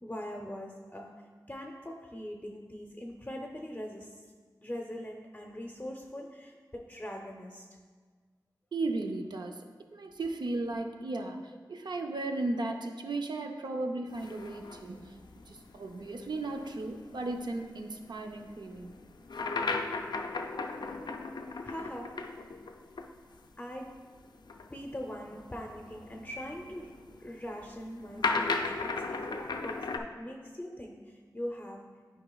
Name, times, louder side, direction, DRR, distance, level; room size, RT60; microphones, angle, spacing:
voice 1, 0.0-1.2 1.5-4.2 4.6-7.6 21.6-22.2 23.6-24.0 24.7-32.2, equal, 20° left, 1 dB, 0.6 m, -42 dB
voice 2, 8.7-9.7 9.9-15.1 15.5-18.9, right 2 dB, 75° right, 4 dB, 0.5 m, -35 dB
sound 1, 14.1-23.1 23.4-23.5 24.4-30.0, left 3 dB, 75° left, 0.4 m, -37 dB
9.7 x 4.9 x 2.3 m, 1.5 s
cardioid pair, 50°, 8 cm